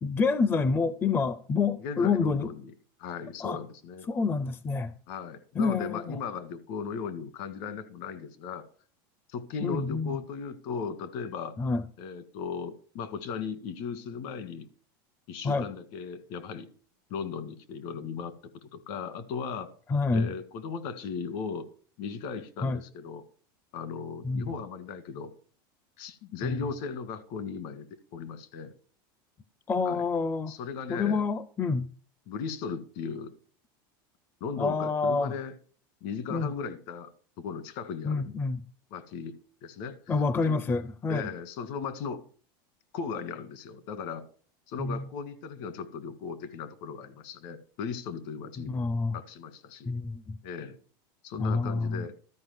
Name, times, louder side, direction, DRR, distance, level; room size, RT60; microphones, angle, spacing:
voice 1, 0.0-2.5 3.4-3.6 4.1-4.9 5.6-6.2 9.6-10.2 11.6-11.8 15.4-15.7 19.9-20.3 22.6-22.8 24.2-24.5 26.4-26.7 29.7-30.6 30.9-31.9 34.6-35.3 36.3-36.5 38.0-38.6 40.1-41.3 44.8-45.0 48.6-49.2 49.9-50.4 51.4-52.1, left 4 dB, 20° left, 0.5 m, -28 dB
voice 2, 1.8-2.6 3.0-4.1 5.1-8.6 9.3-11.6 12.0-14.7 15.3-16.7 17.1-18.3 18.6-19.7 20.1-21.7 22.0-23.2 23.7-25.3 26.0-27.9 28.1-28.7 29.8-30.0 30.5-31.2 32.3-33.3 34.4-35.5 36.0-38.3 38.9-40.1 40.5-40.6 41.1-42.2 42.9-44.3 44.7-48.8 49.1-49.9 50.4-50.8 51.2-52.1, left 6 dB, 60° left, 1.8 m, -37 dB
13.0 x 5.1 x 7.9 m
supercardioid pair, 140°, 12 cm